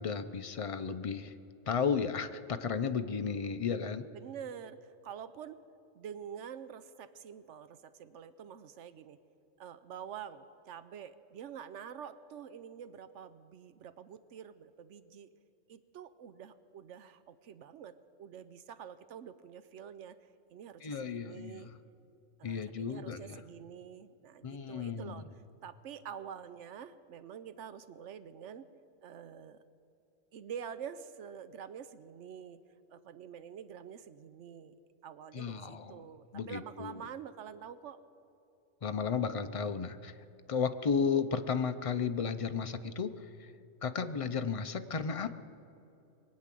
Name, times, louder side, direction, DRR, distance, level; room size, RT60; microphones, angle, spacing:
voice 1, 0.0-1.3 1.7-4.0 20.8-21.7 22.4-23.4 24.4-25.2 35.3-36.0 36.3-37.0 38.8-40.1 40.5-43.5 43.8-45.4, left 6 dB, 50° left, 9 dB, 0.4 m, -34 dB
voice 2, 4.1-5.6 5.9-9.2 9.6-15.3 15.7-21.7 22.4-25.3 25.6-28.7 29.0-29.6 30.3-32.6 32.9-34.7 35.0-38.0, right 8 dB, 70° right, 13 dB, 0.9 m, -47 dB
22.0 x 8.6 x 7.5 m, 2.7 s
omnidirectional pair, 1.3 m